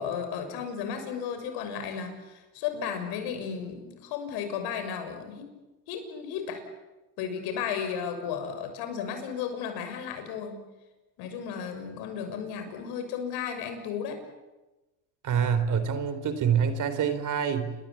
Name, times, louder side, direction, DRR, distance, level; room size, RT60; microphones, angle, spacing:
voice 1, 0.0-5.4 5.9-6.6 7.2-10.6 11.2-14.2, left 7 dB, 70° left, 7 dB, 6.7 m, -34 dB
voice 2, 15.2-17.7, right 7 dB, 50° right, 11 dB, 4.1 m, -26 dB
29.0 x 22.0 x 8.7 m, 1.1 s
supercardioid pair, 95°, 40 cm